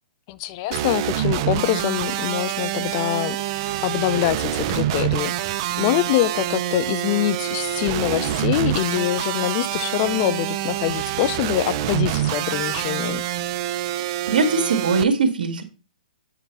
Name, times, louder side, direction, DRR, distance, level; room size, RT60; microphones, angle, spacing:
voice 1, 0.3-3.4 3.8-5.3 5.8-13.2, left 14 dB, 30° left, 0.4 m, -24 dB
sound 1, 0.7-15.0, right 12 dB, 30° right, 0.5 m, -26 dB
voice 2, 14.0-15.6, right 4 dB, 75° right, 1.7 m, -21 dB
8.4 x 4.5 x 4.0 m
hypercardioid pair, 155°, 5 cm